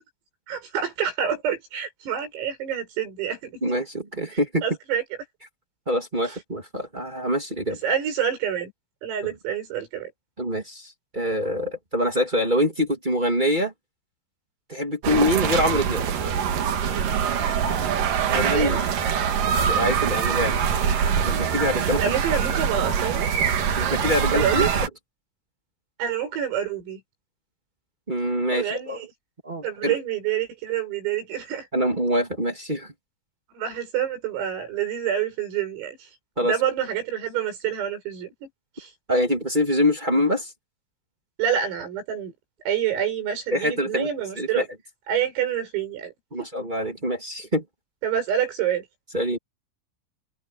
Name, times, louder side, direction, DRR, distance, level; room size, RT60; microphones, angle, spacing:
voice 1, 0.5-3.6 4.3-5.0 6.3-6.4 7.8-8.7 9.0-10.1 17.3-17.6 18.3-18.8 21.8-23.3 24.3-24.7 26.0-27.0 28.5-29.1 29.6-31.7 33.6-36.1 36.4-38.5 38.8-38.9 41.4-42.3 42.7-44.7 45.1-46.1 46.4-46.5 48.0-48.9, right 9 dB, 85° right, 9.7 m, -27 dB
voice 2, 3.6-4.6 5.8-7.8 10.4-13.7 14.7-16.0 18.3-18.9 19.7-20.6 21.3-22.0 23.8-24.7 28.1-29.0 29.4-29.9 31.7-32.9 36.4-36.5 39.1-40.5 43.5-44.1 44.3-44.6 46.3-47.6 49.1-49.4, equal, 30° right, 0.8 m, -25 dB
sound 1, 15.0-24.9, right 7 dB, 55° right, 2.8 m, -24 dB
omnidirectional pair, 5.9 m